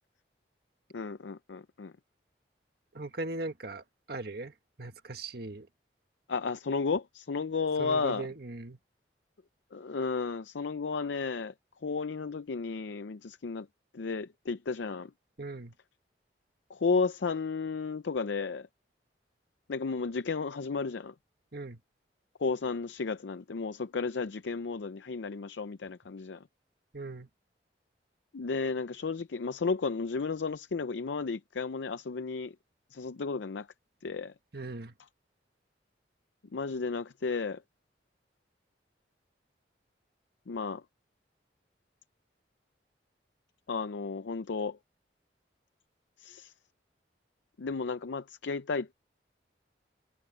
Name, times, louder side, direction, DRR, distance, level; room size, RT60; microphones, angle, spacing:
voice 1, 0.9-1.9 6.3-8.2 9.7-11.5 11.8-13.7 13.9-15.1 16.7-18.7 19.7-21.1 22.4-26.4 28.3-32.5 32.9-33.7 34.0-34.3 36.5-37.6 40.5-40.8 43.7-44.8 46.2-46.5 47.6-48.9, left 4 dB, 75° left, 0.5 m, -33 dB
voice 2, 2.9-5.7 7.8-8.8 15.4-15.7 21.5-21.8 26.9-27.3 34.5-34.9, right 2 dB, 55° right, 1.7 m, -39 dB
head